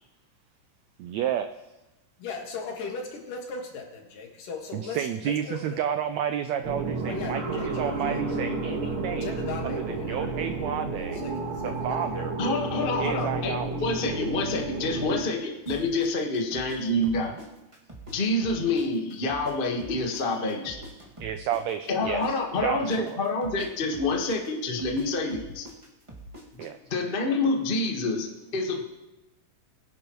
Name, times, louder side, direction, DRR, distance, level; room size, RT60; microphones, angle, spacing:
voice 1, 1.0-1.5 4.7-9.4 9.6-11.2 11.6-12.3 13.0-13.7 21.2-23.2 26.6-26.8, right 9 dB, 85° right, 8 dB, 1.5 m, -31 dB
voice 2, 2.2-5.8 7.0-8.2 9.2-12.4, left 4 dB, 75° left, 1 dB, 3.4 m, -39 dB
sound 1, 6.6-15.2, right 2 dB, 50° right, 4.8 m, -31 dB
voice 3, 12.4-17.4 18.1-20.8 21.9-25.7 26.9-28.8, left 2 dB, 50° left, 1 dB, 0.6 m, -27 dB
sound 2, 15.7-18.2 18.4-22.3 22.5-26.7, right 1 dB, 15° right, 1.4 m, -44 dB
22.5 x 11.0 x 3.1 m, 1.0 s
omnidirectional pair, 3.9 m